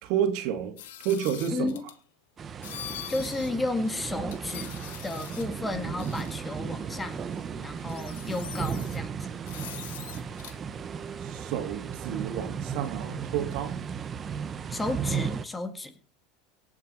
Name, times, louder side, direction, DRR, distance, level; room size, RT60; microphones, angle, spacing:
voice 1, 0.0-0.7 1.0-1.7 11.2-13.8, right 9 dB, 60° right, 2.5 m, -30 dB
sound 1, 0.8-2.0 2.6-3.5 3.8-3.9 4.3-5.6 6.0-6.3 7.3-7.4 7.8-9.0 9.5-10.6, left 13 dB, 80° left, 1.4 m, -42 dB
voice 2, 1.5-1.8 2.8-4.7 5.0-7.2 7.5-9.3 14.7-15.9, left 2 dB, 15° left, 1.9 m, -33 dB
sound 2, 2.4-15.4, right 7 dB, 30° right, 1.1 m, -35 dB
18.0 x 7.5 x 5.6 m
supercardioid pair, 115°, 0 cm